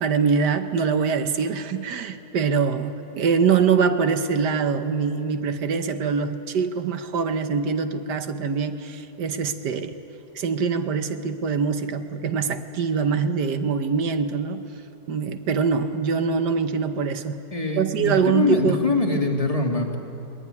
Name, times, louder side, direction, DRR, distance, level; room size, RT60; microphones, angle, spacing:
voice 1, 0.0-10.0 10.3-14.6 15.1-17.4 17.7-18.8, right 5 dB, 80° right, 9 dB, 1.6 m, -24 dB
voice 2, 17.5-20.0, left 3 dB, 20° left, 1 dB, 1.8 m, -23 dB
21.0 x 20.5 x 9.5 m, 3.0 s
omnidirectional pair, 1.8 m